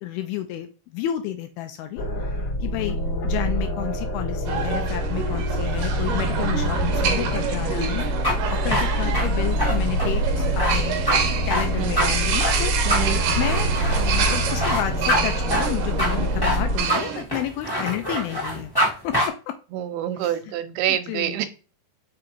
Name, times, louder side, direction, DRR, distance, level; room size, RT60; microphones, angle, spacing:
voice 1, 0.0-3.0 3.2-11.1 11.5-12.8 13.4-19.6 20.2-20.5 20.9-21.4, left 12 dB, 80° left, 8 dB, 2.2 m, -31 dB
sound 1, 2.0-16.8, equal, 65° left, 1.5 m, -25 dB
sound 2, 4.4-17.2, right 6 dB, 65° right, 2.3 m, -28 dB
sound 3, 8.0-18.9 19.1-19.3, equal, 35° left, 0.3 m, -25 dB
voice 2, 11.8-12.2 12.9-13.2 19.7-21.5, right 11 dB, 85° right, 11 dB, 2.6 m, -27 dB
6.1 x 3.7 x 4.4 m, 0.34 s
omnidirectional pair, 4.7 m